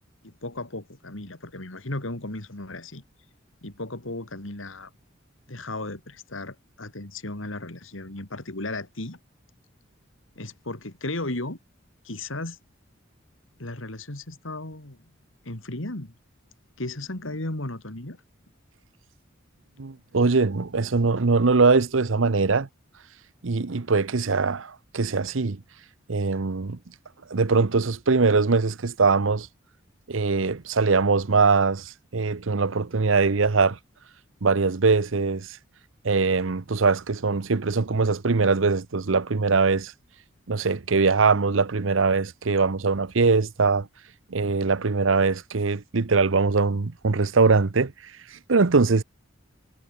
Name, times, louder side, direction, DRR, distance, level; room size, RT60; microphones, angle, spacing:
voice 1, 0.2-3.0 3.6-4.9 5.5-9.2 10.3-11.6 12.0-12.6 13.6-15.0 15.4-16.1 16.8-18.2, left 2 dB, 80° left, 3.1 m, -35 dB
voice 2, 19.8-22.7 23.4-25.6 26.1-26.8 27.3-29.5 30.1-33.8 34.4-35.6 36.0-39.9 40.5-43.9 44.3-47.9 48.3-49.0, right 4 dB, 75° right, 0.8 m, -22 dB
head